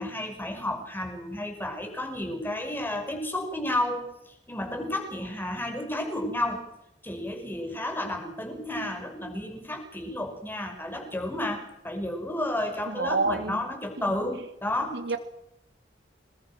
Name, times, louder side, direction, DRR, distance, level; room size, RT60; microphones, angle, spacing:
voice 1, 0.0-4.1 4.5-6.7 7.0-15.0, left 1 dB, 10° left, 4 dB, 6.0 m, -32 dB
voice 2, 12.9-13.6 14.9-15.2, right 3 dB, 70° right, 8 dB, 3.0 m, -28 dB
27.5 x 22.0 x 6.4 m, 0.81 s
head